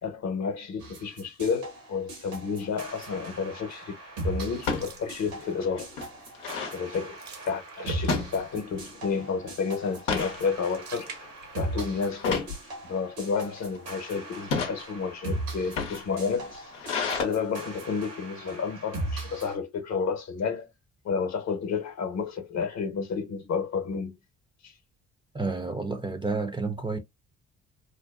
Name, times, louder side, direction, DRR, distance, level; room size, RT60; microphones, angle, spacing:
voice 1, 0.0-3.9 4.2-5.9 6.7-7.2 7.4-11.1 11.6-12.5 12.8-16.7 17.0-20.7 21.0-24.1 24.6-24.7, left 5 dB, 50° left, 0.9 m, -31 dB
sound 1, 0.8-19.6, right 2 dB, 75° right, 1.3 m, -39 dB
sound 2, 2.8-3.2 4.6-4.9 5.4-5.5 5.7-6.8 8.1-8.9 9.2-9.5 9.9-10.4 11.0-11.2 12.2-12.6 13.3-13.8 14.3-14.8 15.5-17.2, left 5 dB, 85° left, 0.7 m, -31 dB
sound 3, 4.5-5.8 6.2-6.5 6.7-8.5 10.2-12.0 12.4-12.5 13.3-14.2, right 6 dB, 50° right, 0.8 m, -47 dB
voice 2, 25.3-27.0, right 3 dB, 15° right, 0.5 m, -30 dB
2.6 x 2.2 x 2.3 m
hypercardioid pair, 50°, 35 cm